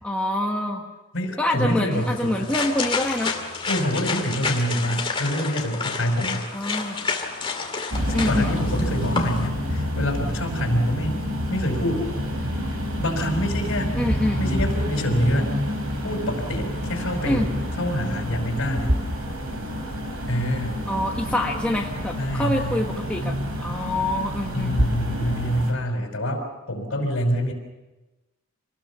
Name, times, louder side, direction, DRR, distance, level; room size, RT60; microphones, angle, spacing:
voice 1, 0.0-0.8 1.4-3.3 6.5-7.0 8.1-8.5 13.9-14.4 17.2-17.5 20.9-24.8, left 1 dB, 5° left, -1 dB, 1.3 m, -26 dB
voice 2, 1.1-2.5 3.7-6.5 8.1-11.2 11.5-12.1 13.0-13.9 14.4-15.5 16.0-17.5 17.8-18.9 20.3-20.8 22.2-22.8 24.5-27.5, equal, 60° left, 2 dB, 5.0 m, -26 dB
sound 1, 1.9-9.5, left 4 dB, 25° left, 2.4 m, -29 dB
sound 2, 7.9-25.7, equal, 85° right, 4.5 m, -28 dB
26.0 x 19.5 x 7.0 m, 1.1 s
head